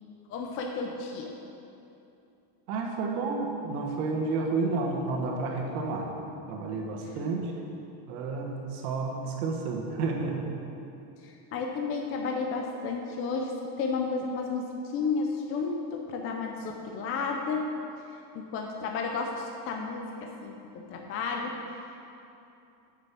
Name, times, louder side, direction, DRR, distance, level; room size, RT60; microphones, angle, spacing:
voice 1, 0.3-1.3 7.0-7.1 11.2-17.7 18.3-21.6, left 4 dB, 30° left, 2 dB, 0.5 m, -32 dB
voice 2, 2.7-6.1 6.5-7.5 8.1-10.4, right 3 dB, 70° right, 1 dB, 1.7 m, -31 dB
6.8 x 6.8 x 7.5 m, 2.8 s
cardioid pair, 165°, 47 cm